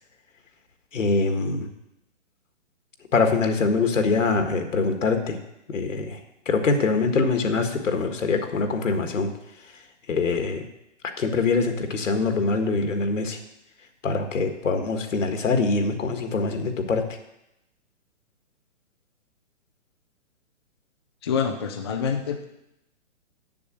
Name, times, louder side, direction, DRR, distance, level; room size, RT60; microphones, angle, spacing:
voice 1, 0.9-1.7 3.1-5.4 5.7-6.2 6.5-9.3 10.1-10.7 11.2-13.4 14.0-17.0, left 4 dB, 80° left, 6 dB, 1.8 m, -24 dB
voice 2, 21.2-22.4, left 7 dB, 20° left, 3 dB, 0.5 m, -26 dB
7.5 x 7.0 x 8.0 m, 0.86 s
hypercardioid pair, 160°, 37 cm